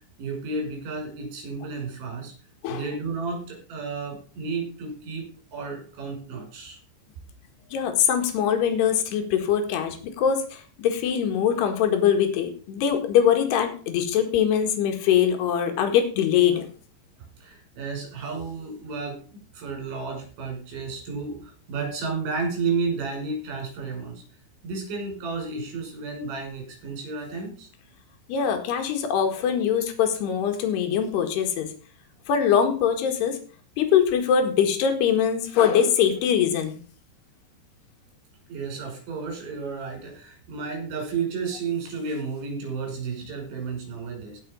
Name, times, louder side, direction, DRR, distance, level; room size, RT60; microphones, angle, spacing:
voice 1, 0.2-2.3 2.7-6.8 17.4-19.2 19.5-24.2 24.6-27.7 38.5-44.4, right 4 dB, 80° right, 0 dB, 8.1 m, -32 dB
voice 2, 7.7-16.7 28.3-31.7 32.3-33.4 33.8-36.8, left 8 dB, 70° left, 5 dB, 3.7 m, -22 dB
18.0 x 6.2 x 5.3 m, 0.39 s
omnidirectional pair, 5.1 m